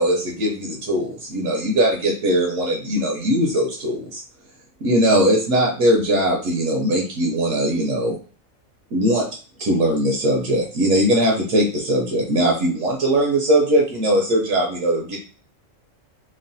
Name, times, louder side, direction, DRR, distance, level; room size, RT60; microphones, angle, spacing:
voice 1, 0.0-4.2 4.8-8.2 8.9-9.3 9.6-15.2, right 1 dB, 75° right, 0 dB, 1.0 m, -20 dB
3.1 x 2.0 x 2.5 m, 0.39 s
omnidirectional pair, 1.4 m